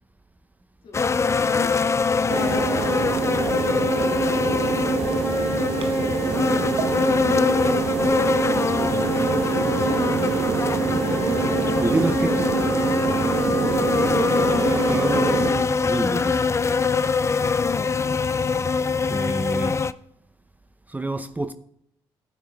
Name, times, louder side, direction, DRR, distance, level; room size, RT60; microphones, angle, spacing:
voice 1, 0.8-1.8 2.2-3.1 5.1-5.6 7.1-7.8 14.0-14.4 14.6-15.4, left 5 dB, 65° left, 2.2 m, -41 dB
sound 1, 0.9-19.9, left 5 dB, 30° left, 0.4 m, -23 dB
sound 2, 2.3-15.5, right 5 dB, 70° right, 1.1 m, -25 dB
sound 3, 5.6-16.2, right 1 dB, 35° right, 3.3 m, -45 dB
voice 2, 11.8-12.7 14.7-16.6 19.1-19.8 20.9-21.5, right 2 dB, 15° right, 0.6 m, -28 dB
15.0 x 9.3 x 2.4 m
supercardioid pair, 60°, 10 cm